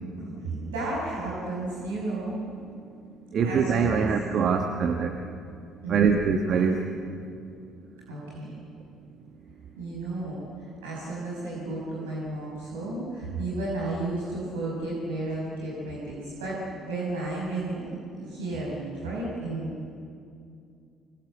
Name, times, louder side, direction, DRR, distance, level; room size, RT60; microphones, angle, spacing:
voice 1, 0.2-2.4 3.4-4.1 5.8-6.1 8.1-8.5 9.8-10.4 10.8-19.9, right 2 dB, 75° right, -6 dB, 6.1 m, -33 dB
voice 2, 3.3-5.1 5.9-6.8, right 6 dB, 45° right, 4 dB, 1.5 m, -23 dB
26.0 x 21.0 x 7.9 m, 2.4 s
figure-of-eight pair, 50°, 0 cm